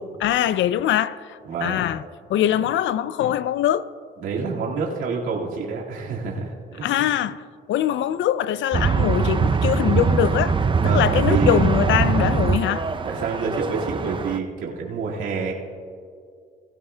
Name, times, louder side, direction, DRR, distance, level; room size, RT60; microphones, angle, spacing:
voice 1, 0.0-2.0 2.3-3.9 6.8-10.6 10.8-12.9, left 11 dB, 70° left, 0.4 m, -23 dB
voice 2, 4.2-6.9 10.8-11.6 13.0-15.5, right 5 dB, 90° right, 2.0 m, -28 dB
sound 1, 8.7-14.4, right 5 dB, 25° right, 0.5 m, -22 dB
19.0 x 12.5 x 2.2 m
cardioid pair, 90°, 20 cm